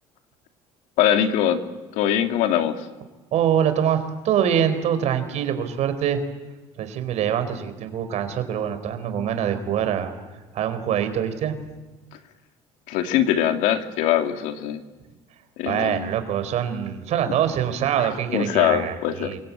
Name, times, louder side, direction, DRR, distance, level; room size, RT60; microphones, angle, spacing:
voice 1, 1.0-1.6 1.9-2.9 12.9-14.8 15.6-16.1 18.0-19.3, left 10 dB, 85° left, 7 dB, 2.4 m, -22 dB
voice 2, 3.3-4.0 4.2-6.2 6.8-10.1 10.5-11.5 15.7-19.4, right 9 dB, 60° right, 9 dB, 4.4 m, -24 dB
27.5 x 25.0 x 8.8 m, 1.2 s
cardioid pair, 110°, 13 cm